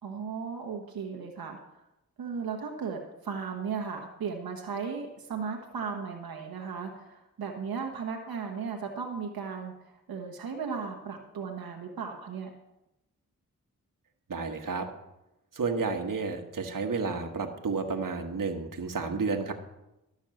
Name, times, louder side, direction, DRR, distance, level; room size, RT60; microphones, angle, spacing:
voice 1, 0.0-1.6 2.2-12.5, right 5 dB, 90° right, 2 dB, 1.3 m, -36 dB
voice 2, 14.3-14.9 15.5-19.5, right 4 dB, 65° right, 5 dB, 1.6 m, -31 dB
12.5 x 6.4 x 7.6 m, 0.91 s
cardioid pair, 50°, 35 cm